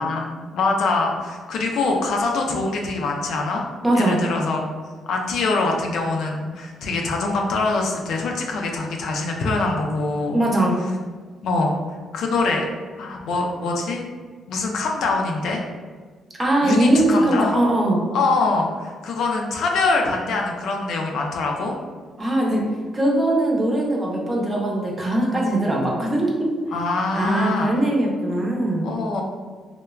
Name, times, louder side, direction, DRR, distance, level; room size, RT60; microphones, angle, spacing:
voice 1, 0.0-3.6 3.9-4.7 5.1-10.4 11.4-11.8 12.1-12.6 13.0-14.0 14.5-15.6 16.6-17.5 18.1-21.7 26.7-27.7 28.8-29.2, left 3 dB, 75° left, 1 dB, 0.4 m, -24 dB
voice 2, 3.8-4.2 10.3-10.8 16.4-18.0 22.2-22.6 22.9-26.5 27.1-28.9, right 1 dB, 25° right, -2 dB, 0.7 m, -20 dB
3.1 x 2.1 x 2.3 m, 1.5 s
cardioid pair, 90°, 0 cm